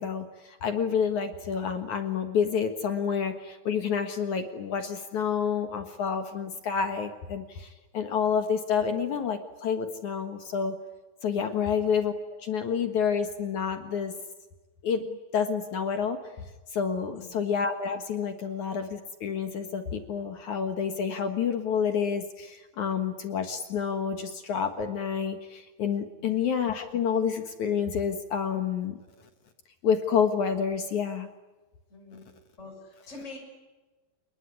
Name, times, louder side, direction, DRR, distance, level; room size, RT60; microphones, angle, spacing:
voice 1, 0.0-10.8 11.2-12.1 12.4-14.1 14.8-16.2 16.7-29.0 29.8-31.3, left 7 dB, 55° left, 7 dB, 2.3 m, -29 dB
voice 2, 11.3-11.7 17.1-17.4 26.2-26.3 31.9-32.2 32.6-33.4, left 3 dB, 15° left, 0 dB, 6.8 m, -45 dB
29.5 x 20.0 x 9.9 m, 1.2 s
omnidirectional pair, 5.1 m